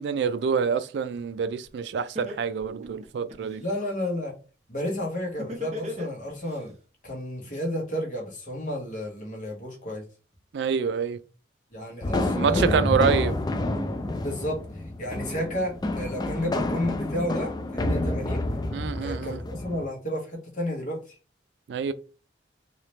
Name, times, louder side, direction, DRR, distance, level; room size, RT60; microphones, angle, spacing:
voice 1, 0.0-3.6 10.5-11.2 12.3-13.3 18.7-19.4 21.7-21.9, right 6 dB, 70° right, 0.3 m, -26 dB
Laughter, 1.6-1.7 2.2-3.6 5.4-6.6, left 1 dB, 40° right, 0.9 m, -35 dB
voice 2, 3.6-4.3 4.7-6.7 7.0-10.0 11.7-12.7 14.1-18.4 19.0-21.1, left 1 dB, 45° left, 1.3 m, -32 dB
sound 1, 12.0-19.8, left 2 dB, 20° left, 0.3 m, -28 dB
3.2 x 2.9 x 3.0 m
head